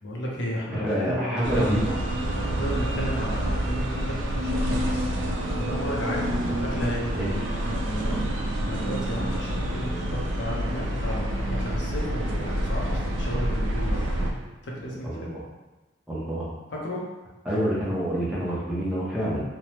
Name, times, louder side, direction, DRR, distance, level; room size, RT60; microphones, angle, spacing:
voice 1, 0.0-1.9 2.3-5.1 5.6-7.2 7.9-14.1 14.6-15.4 16.7-17.1, equal, 75° left, -2 dB, 0.6 m, -33 dB
voice 2, 0.7-1.9 6.4-6.5 7.1-7.3 15.0-15.4 16.1-16.5 17.5-19.4, equal, 5° right, -8 dB, 0.6 m, -27 dB
sound 1, 1.4-14.3, right 1 dB, 90° right, 0.4 m, -28 dB
3.2 x 2.0 x 2.8 m, 1.1 s
head